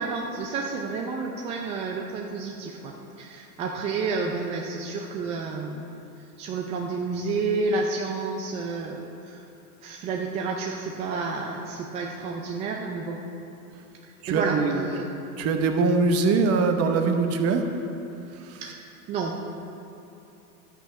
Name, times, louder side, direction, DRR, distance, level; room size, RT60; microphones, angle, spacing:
voice 1, 0.0-5.8 6.4-9.4 9.8-13.2 14.1-15.1 18.6-19.6, right 4 dB, 15° right, 0 dB, 0.4 m, -30 dB
voice 2, 14.2-14.8 15.4-17.6 18.4-18.6, right 4 dB, 30° right, 5 dB, 1.0 m, -22 dB
11.0 x 8.2 x 5.1 m, 2.8 s
hypercardioid pair, 105°, 48 cm